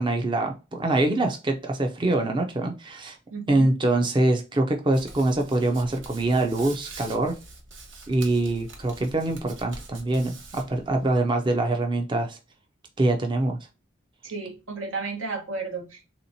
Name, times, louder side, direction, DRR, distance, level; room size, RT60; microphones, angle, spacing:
voice 1, 0.0-3.2 3.5-7.3 8.1-12.4 13.0-13.6, right 2 dB, 25° right, 4 dB, 0.4 m, -24 dB
voice 2, 3.3-3.7 14.2-16.1, right 4 dB, 90° right, 2 dB, 1.1 m, -33 dB
Hands, 4.9-11.2, right 3 dB, 70° right, 0.9 m, -45 dB
3.5 x 2.8 x 2.6 m, 0.30 s
head